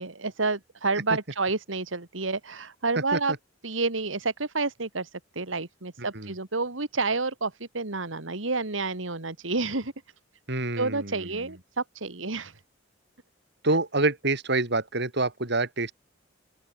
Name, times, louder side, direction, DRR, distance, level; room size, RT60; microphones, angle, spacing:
voice 1, 0.0-3.3 3.6-9.9 10.8-12.6, right 3 dB, 85° right, 2.3 m, -29 dB
voice 2, 6.0-6.3 10.5-11.4 13.6-15.9, right 2 dB, 60° right, 4.9 m, -27 dB
open air
head